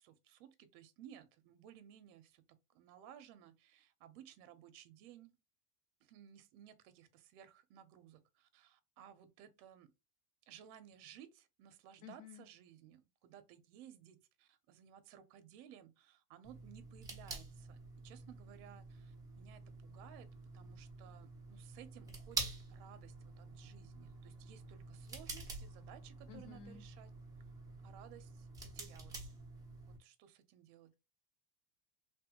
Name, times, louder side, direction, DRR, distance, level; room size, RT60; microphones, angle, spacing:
voice 1, 0.0-5.4 6.0-9.9 10.5-17.8 18.0-20.3 20.5-27.1 27.8-28.5 28.7-29.3 29.9-31.0, right 10 dB, 65° right, 0.7 m, -58 dB
voice 2, 12.0-12.5 26.3-26.8, left 8 dB, 35° left, 0.4 m, -53 dB
sound 1, 16.4-30.0, right 4 dB, 5° right, 0.6 m, -48 dB
3.3 x 2.2 x 2.8 m
supercardioid pair, 160°, 49 cm